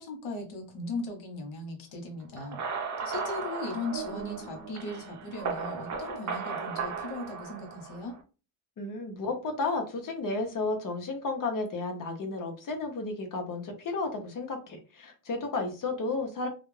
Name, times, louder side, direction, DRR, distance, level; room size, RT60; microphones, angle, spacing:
voice 1, 0.0-2.6 3.0-8.2, left 2 dB, 90° left, 3 dB, 1.0 m, -38 dB
sound 1, 2.4-8.2, right 5 dB, 40° right, 0.6 m, -36 dB
voice 2, 8.8-16.5, left 3 dB, 45° left, 4 dB, 0.8 m, -33 dB
2.4 x 2.1 x 3.1 m, 0.34 s
cardioid pair, 115°, 46 cm